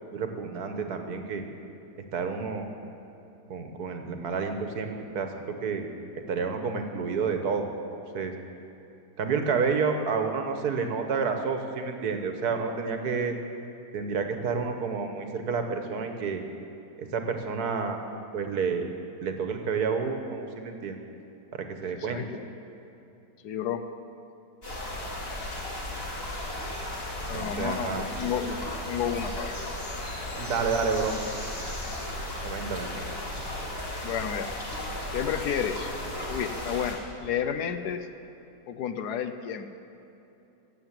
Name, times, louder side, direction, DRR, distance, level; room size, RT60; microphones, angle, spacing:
voice 1, 0.1-1.4 2.1-2.7 3.5-5.9 6.3-8.3 9.2-13.3 13.9-16.4 17.0-18.0 18.3-18.9 19.2-21.0 21.5-22.3 27.2-28.0 30.4-31.1 32.4-32.9 33.4-33.5, right 5 dB, 65° right, 5 dB, 1.5 m, -30 dB
voice 2, 21.9-22.4 23.4-23.8 27.3-28.6 28.9-29.7 34.0-34.5 35.1-35.9 36.3-38.1 38.7-39.7, left 8 dB, 75° left, 9 dB, 1.2 m, -31 dB
sound 1, 24.6-36.9, left 1 dB, 35° left, 2.6 m, -35 dB
16.0 x 7.9 x 7.5 m, 2.9 s
omnidirectional pair, 1.8 m